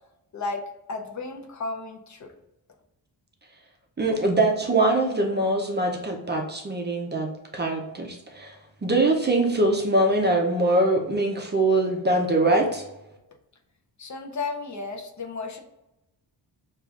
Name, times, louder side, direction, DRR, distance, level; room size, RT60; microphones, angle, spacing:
voice 1, 0.9-2.3 14.0-15.6, left 3 dB, 45° left, 3 dB, 0.6 m, -33 dB
voice 2, 4.0-8.5 8.8-12.8, right 2 dB, 25° right, 2 dB, 0.5 m, -23 dB
6.4 x 2.4 x 2.4 m, 0.93 s
wide cardioid pair, 130°, 42 cm